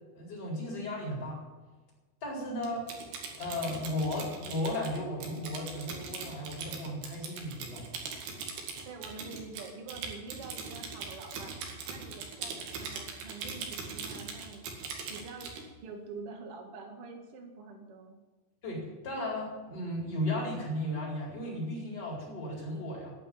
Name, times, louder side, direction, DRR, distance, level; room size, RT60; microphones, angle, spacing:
voice 1, 0.1-1.4 2.2-2.9 3.4-7.9 18.6-23.1, left 1 dB, 25° left, -4 dB, 4.8 m, -35 dB
Typing, 2.6-15.6, right 5 dB, 80° right, 4.1 m, -41 dB
voice 2, 8.8-11.6 11.9-14.6 15.1-15.5 15.8-18.2, right 4 dB, 40° right, 2 dB, 2.5 m, -46 dB
11.5 x 9.3 x 10.0 m, 1.2 s
omnidirectional pair, 4.6 m